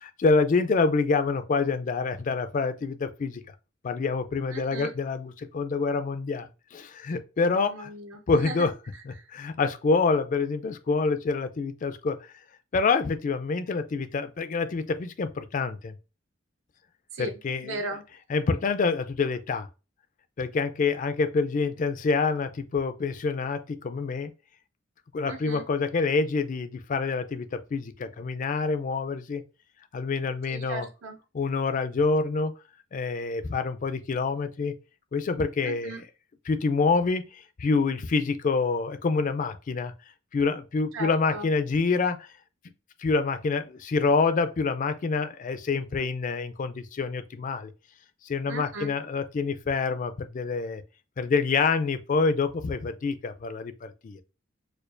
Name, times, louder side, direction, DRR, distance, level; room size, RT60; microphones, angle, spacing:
voice 1, 0.0-3.4 3.8-7.9 8.3-8.7 9.1-12.3 12.7-15.9 17.2-17.8 18.3-19.7 20.4-24.3 25.1-29.4 29.9-30.9 31.3-32.5 32.9-34.8 35.1-36.0 36.5-39.9 40.3-42.3 43.0-47.7 48.2-50.8 51.2-54.2, left 4 dB, 40° left, 0.4 m, -27 dB
voice 2, 4.5-4.9 7.5-8.7 9.2-9.3 17.1-17.4 17.6-18.0 25.3-25.6 30.5-31.2 35.6-36.0 40.9-41.5 48.5-48.9, right 2 dB, 75° right, 0.8 m, -37 dB
4.4 x 2.4 x 2.5 m
head